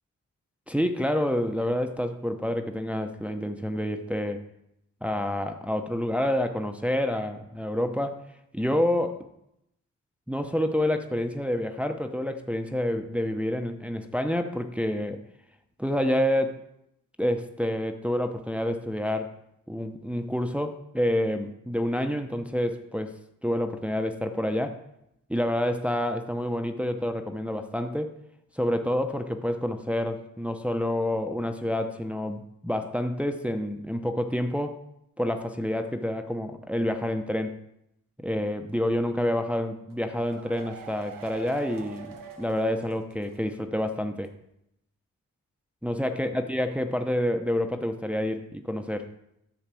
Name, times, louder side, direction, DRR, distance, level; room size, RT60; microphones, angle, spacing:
voice 1, 0.7-4.4 5.0-8.2 8.5-9.3 10.3-15.2 15.8-16.6 17.2-19.3 19.7-23.1 23.4-24.8 25.3-28.1 28.5-34.8 35.2-37.6 38.2-44.3 45.8-49.1, left 1 dB, 5° right, 6 dB, 0.8 m, -28 dB
sound 1, 39.9-43.5 43.8-43.9 44.2-44.3, right 7 dB, 75° right, 1.1 m, -45 dB
10.5 x 4.0 x 7.6 m, 0.81 s
cardioid pair, 55°, 33 cm